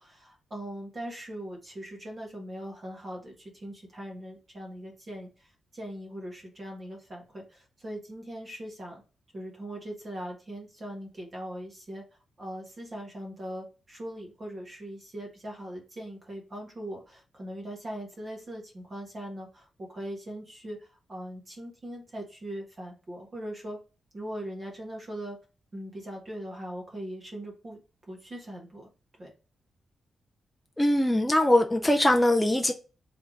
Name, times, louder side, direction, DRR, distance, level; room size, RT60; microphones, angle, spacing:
voice 1, 0.0-9.0 9.3-12.0 12.4-23.8 24.1-25.4 25.7-27.8 28.1-28.9 29.2-29.3, right 1 dB, 30° right, 1.4 m, -40 dB
voice 2, 30.8-32.7, left 1 dB, 5° left, 0.4 m, -22 dB
3.5 x 3.2 x 3.8 m
wide cardioid pair, 165°, 0 cm